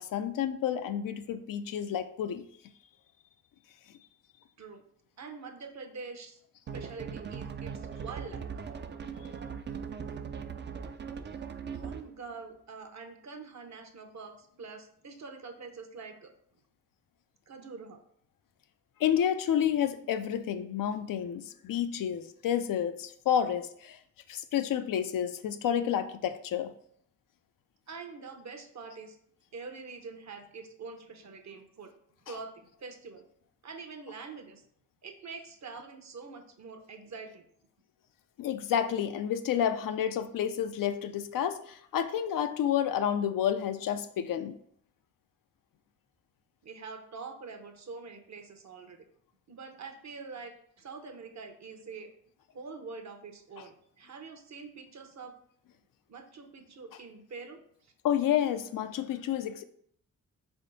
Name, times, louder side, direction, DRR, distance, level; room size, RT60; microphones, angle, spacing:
voice 1, 0.0-2.4 19.0-24.0 24.3-26.7 38.4-44.6 58.0-59.6, left 9 dB, 70° left, 10 dB, 0.5 m, -30 dB
voice 2, 5.2-6.4 6.7-8.4 11.7-16.3 17.5-18.0 27.9-29.2 29.5-31.9 32.3-33.2 33.6-34.6 35.0-37.5 46.6-49.1 49.5-52.1 52.5-55.3 56.1-57.9, right 4 dB, 50° right, 6 dB, 0.8 m, -45 dB
sound 1, 6.7-12.2, right 6 dB, 35° right, 0.4 m, -39 dB
3.7 x 3.5 x 4.0 m, 0.66 s
cardioid pair, 70°, 34 cm